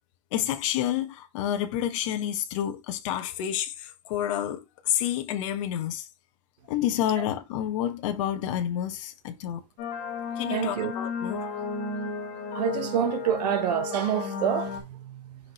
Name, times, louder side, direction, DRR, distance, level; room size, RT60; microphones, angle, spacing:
voice 1, 0.3-6.1 6.7-9.6 10.4-11.5, left 11 dB, 50° left, 1.5 m, -29 dB
sound 1, 9.8-14.8, left 5 dB, 35° left, 2.0 m, -33 dB
voice 2, 10.5-10.9 12.5-15.4, right 10 dB, 85° right, 1.2 m, -27 dB
6.1 x 5.0 x 3.1 m
supercardioid pair, 175°, 20 cm